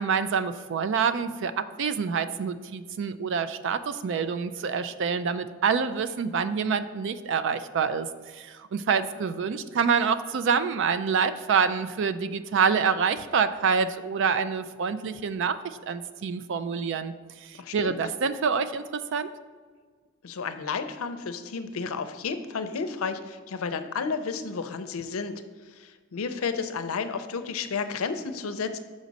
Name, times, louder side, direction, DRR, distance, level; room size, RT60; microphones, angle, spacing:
voice 1, 0.0-8.1 8.3-17.1 17.4-19.3, right 6 dB, 60° right, 12 dB, 0.4 m, -27 dB
voice 2, 17.6-18.0 20.2-28.8, left 5 dB, 85° left, 10 dB, 0.5 m, -32 dB
6.2 x 5.1 x 4.0 m, 1.5 s
head